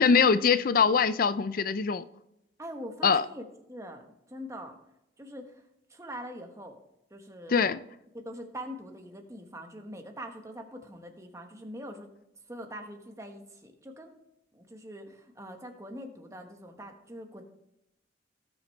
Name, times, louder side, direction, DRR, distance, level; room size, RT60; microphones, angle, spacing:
voice 1, 0.0-2.0 3.0-3.2 7.5-7.8, left 5 dB, 50° left, 0.4 m, -23 dB
voice 2, 2.6-4.7 5.2-5.6 5.9-6.8 7.1-7.6 8.1-12.1 12.5-14.1 14.5-17.4, equal, 15° right, 1.2 m, -43 dB
18.0 x 6.2 x 3.2 m
head